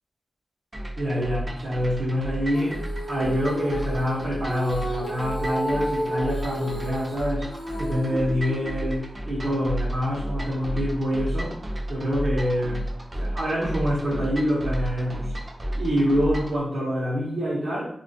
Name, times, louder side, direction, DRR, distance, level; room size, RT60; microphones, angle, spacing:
sound 1, 0.7-16.6, right 1 dB, 30° right, 0.4 m, -32 dB
voice 1, 1.0-2.8 3.1-7.5 7.8-11.5 11.9-12.8 13.1-15.3 15.8-17.9, equal, 65° right, -9 dB, 0.7 m, -26 dB
Female singing, 2.5-9.0, equal, 60° left, 0.5 m, -32 dB
2.3 x 2.3 x 2.5 m, 0.69 s
wide cardioid pair, 125°, 0 cm